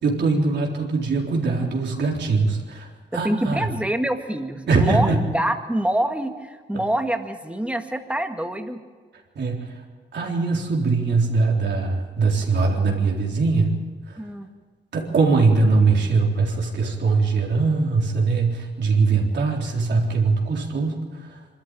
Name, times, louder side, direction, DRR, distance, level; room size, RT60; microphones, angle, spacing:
voice 1, 0.0-3.7 4.7-5.2 9.4-9.6 10.1-13.7 14.1-14.2 14.9-21.3, right 4 dB, 75° right, -1 dB, 3.8 m, -21 dB
voice 2, 3.1-8.8 14.2-14.5, right 1 dB, 5° right, 5 dB, 1.9 m, -26 dB
24.5 x 13.0 x 9.1 m, 1.5 s
cardioid pair, 85°, 18 cm